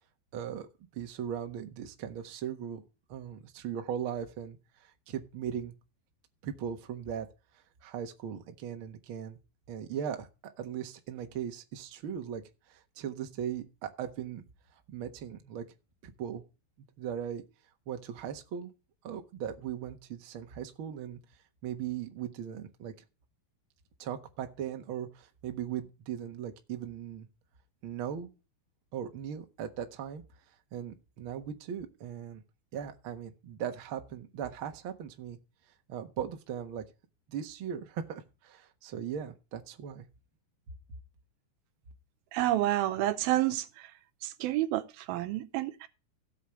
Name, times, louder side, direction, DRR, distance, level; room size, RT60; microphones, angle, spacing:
voice 1, 0.3-0.7 0.9-2.8 3.1-5.7 6.4-7.3 7.8-9.4 9.7-14.4 14.9-15.7 16.0-16.4 17.0-17.4 17.9-18.7 19.0-21.2 21.6-22.9 24.0-27.3 27.8-28.3 28.9-30.2 30.7-32.4 32.7-35.4 35.9-36.8 37.3-40.1, right 9 dB, 55° right, 1.4 m, -38 dB
voice 2, 42.3-43.9 44.2-45.9, right 15 dB, 85° right, 2.7 m, -29 dB
16.5 x 7.5 x 3.1 m
omnidirectional pair, 4.2 m